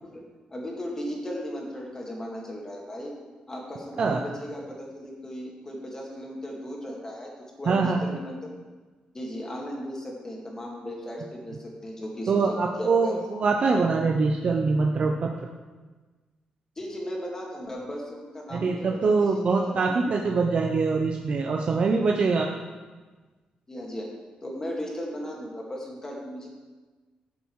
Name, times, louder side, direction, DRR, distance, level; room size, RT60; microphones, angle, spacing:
voice 1, 0.5-3.1 3.5-7.3 7.6-8.5 9.1-13.2 16.8-19.4 19.7-20.0 23.7-24.1 24.4-26.5, equal, 20° left, -1 dB, 2.4 m, -36 dB
voice 2, 7.7-8.1 12.3-15.3 18.5-22.5, right 4 dB, 50° right, 1 dB, 0.8 m, -24 dB
11.5 x 7.0 x 4.8 m, 1.3 s
cardioid pair, 115°, 3 cm